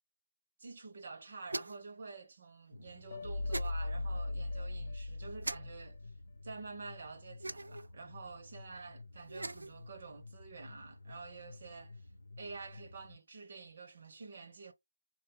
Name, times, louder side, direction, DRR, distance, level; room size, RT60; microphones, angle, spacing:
voice 1, 0.6-6.0 6.4-12.0 12.4-14.7, right 4 dB, 35° right, 0.8 m, -48 dB
sound 1, 1.5-1.9 3.5-3.7 5.4-5.6 7.4-7.9 9.2-9.7, right 2 dB, 85° right, 0.4 m, -40 dB
sound 2, 2.7-13.2, left 3 dB, 90° left, 0.6 m, -53 dB
sound 3, 3.1-6.3, left 2 dB, 45° left, 0.4 m, -38 dB
4.1 x 2.3 x 3.0 m
figure-of-eight pair, 170°, 0 cm